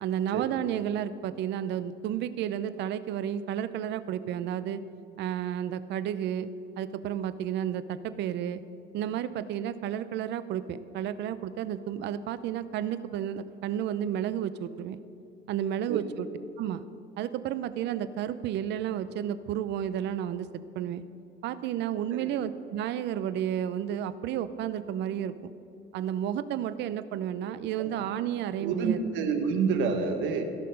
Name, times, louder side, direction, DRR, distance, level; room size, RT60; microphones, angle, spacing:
voice 1, 0.0-4.8 5.2-6.5 6.8-8.6 8.9-15.0 15.5-16.3 16.6-16.9 17.2-20.5 20.8-21.0 21.4-25.5 25.9-29.0, right 10 dB, 65° right, 14 dB, 0.5 m, -32 dB
voice 2, 28.6-30.4, right 5 dB, 85° right, 6 dB, 1.2 m, -28 dB
16.0 x 6.7 x 5.2 m, 2.8 s
cardioid pair, 175°, 19 cm